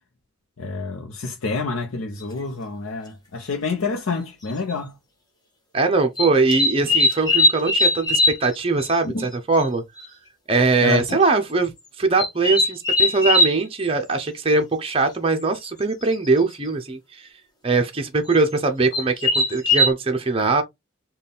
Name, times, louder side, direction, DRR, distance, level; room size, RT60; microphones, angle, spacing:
voice 1, 0.6-4.9 9.0-9.2 10.8-11.2, left 4 dB, 75° left, 0.7 m, -28 dB
sound 1, 2.2-2.3 3.7-3.8 4.5-4.7 6.2-8.5 8.8-8.9 9.2-9.3 9.6-9.7 10.0-10.1 10.9-11.1 12.2-13.6 15.6-15.7 16.0-16.4 18.3-18.4 18.9-19.9, left 1 dB, 20° left, 1.0 m, -20 dB
voice 2, 5.7-9.8 10.5-17.3 17.6-20.6, right 3 dB, 25° right, 0.5 m, -21 dB
4.1 x 2.3 x 3.4 m
head